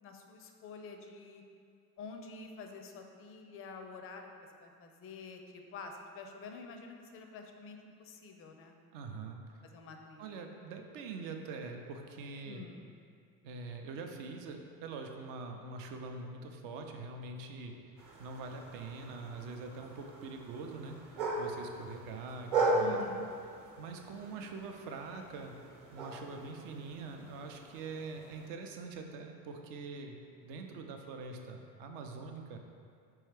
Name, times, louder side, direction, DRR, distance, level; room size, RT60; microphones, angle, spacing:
voice 1, 0.0-1.4 2.0-8.7 9.6-10.4 12.5-12.8 22.8-23.3, left 4 dB, 30° left, 4 dB, 0.4 m, -48 dB
voice 2, 8.9-9.6 10.2-12.6 13.4-17.7 18.2-23.0 23.8-25.5 25.9-30.2 30.4-32.6, right 4 dB, 60° right, 4 dB, 0.6 m, -44 dB
sound 1, 18.0-28.5, right 2 dB, 40° right, 1.0 m, -38 dB
4.5 x 3.1 x 3.3 m, 2.3 s
hypercardioid pair, 75°, 49 cm